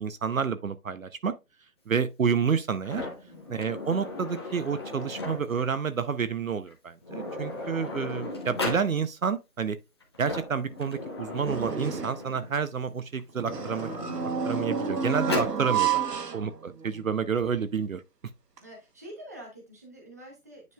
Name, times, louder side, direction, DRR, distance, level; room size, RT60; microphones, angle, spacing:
voice 1, 0.0-1.3 1.9-3.1 3.5-9.8 10.2-13.9 14.4-16.0 16.3-18.0, right 6 dB, 60° right, 0.7 m, -29 dB
Sliding door, 2.8-5.7 6.7-6.8 7.0-8.9 10.0-12.5 13.3-15.6, left 2 dB, 15° left, 0.9 m, -36 dB
voice 2, 3.2-3.6 18.6-20.7, equal, 10° right, 0.8 m, -47 dB
sound 1, 11.5-12.3 13.4-17.0 17.4-17.5 18.6-18.7, right 7 dB, 85° right, 1.2 m, -30 dB
9.4 x 5.3 x 2.3 m
figure-of-eight pair, 155°, 47 cm